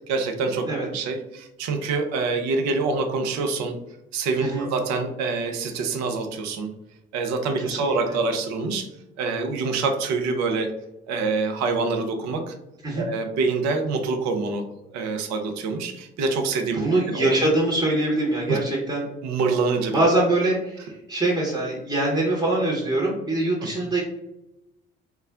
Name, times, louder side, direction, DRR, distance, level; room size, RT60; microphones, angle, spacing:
voice 1, 0.1-3.8 4.1-6.7 7.1-8.9 9.2-10.7 11.1-12.5 13.0-14.7 14.9-17.3 18.5-18.6 19.2-20.0, right 4 dB, 65° right, 5 dB, 0.6 m, -26 dB
voice 2, 7.6-8.2 12.8-13.1 16.7-19.1 19.9-24.0, right 2 dB, 15° right, -4 dB, 0.9 m, -23 dB
2.3 x 2.1 x 3.5 m, 0.88 s
hypercardioid pair, 50°, 30 cm